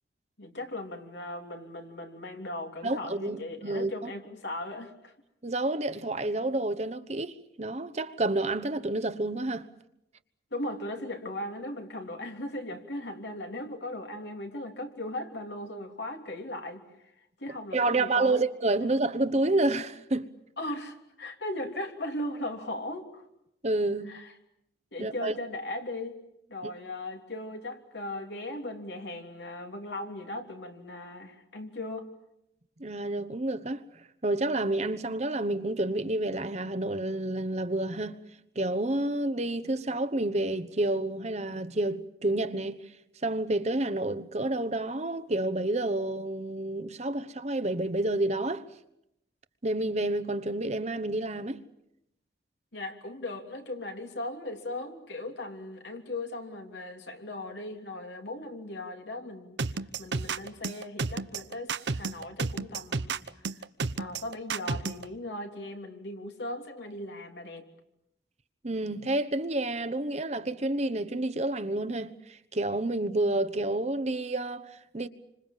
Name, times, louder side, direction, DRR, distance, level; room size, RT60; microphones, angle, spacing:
voice 1, 0.4-5.1 10.5-16.8 17.4-18.4 20.6-23.2 24.1-24.3 24.9-26.2 26.5-32.1 52.7-59.6 60.0-63.2 64.0-67.7, left 1 dB, 80° left, 3.3 m, -38 dB
voice 2, 2.8-4.1 5.4-9.7 17.7-20.3 23.6-24.1 25.0-25.3 32.8-33.8 34.2-38.2 38.5-42.8 43.2-48.7 49.6-51.6 68.6-75.1, right 2 dB, 40° right, 1.1 m, -29 dB
sound 1, 59.6-65.0, right 4 dB, 85° right, 0.9 m, -31 dB
28.0 x 26.0 x 7.5 m
head